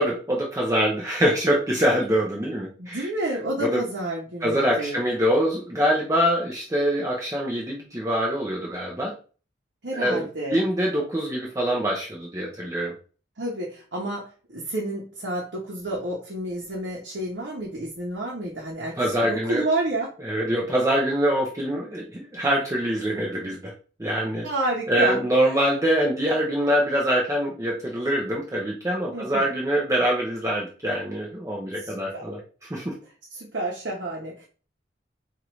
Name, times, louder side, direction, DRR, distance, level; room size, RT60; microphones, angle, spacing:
voice 1, 0.0-3.1 3.6-3.8 4.4-9.1 9.9-12.9 18.9-19.7 20.2-23.7 24.0-24.5 24.9-32.4 32.7-32.9, equal, 15° right, -2 dB, 0.6 m, -24 dB
voice 2, 2.8-5.0 9.8-10.6 13.4-20.1 24.4-25.2 29.1-29.5 31.8-32.2 33.3-34.5, right 1 dB, 70° right, -3 dB, 0.9 m, -30 dB
4.6 x 2.5 x 3.0 m, 0.37 s
head